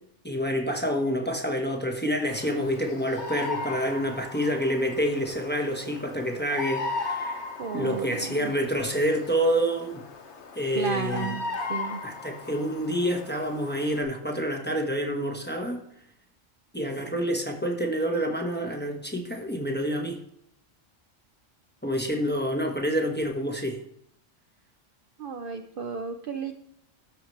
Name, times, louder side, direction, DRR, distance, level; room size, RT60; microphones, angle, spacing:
voice 1, 0.2-7.4 7.7-10.0 10.6-11.4 12.0-15.8 16.7-20.2 21.8-23.8, equal, 10° left, 2 dB, 1.1 m, -28 dB
Bird vocalization bird call bird song, 2.2-14.0, left 3 dB, 65° left, 1.4 m, -37 dB
voice 2, 7.6-8.5 10.7-11.4 11.7-12.0 25.2-26.5, right 6 dB, 55° right, 5 dB, 0.7 m, -33 dB
13.0 x 5.0 x 3.2 m, 0.72 s
omnidirectional pair, 1.2 m